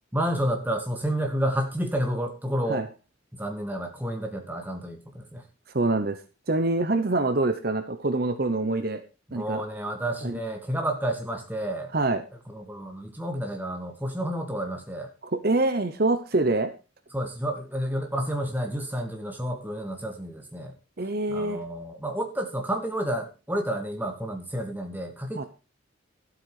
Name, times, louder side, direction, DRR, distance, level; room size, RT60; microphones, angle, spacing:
voice 1, 0.1-2.8 3.3-5.4 9.3-11.9 12.5-15.1 17.1-20.7 21.3-25.5, right 1 dB, 10° right, 3 dB, 1.8 m, -30 dB
voice 2, 5.7-6.2 6.5-9.0 9.3-9.6 10.2-10.4 11.9-12.2 15.3-16.7 21.0-21.6 25.4-25.5, right 2 dB, 50° right, 9 dB, 0.9 m, -25 dB
12.5 x 8.2 x 4.9 m, 0.32 s
head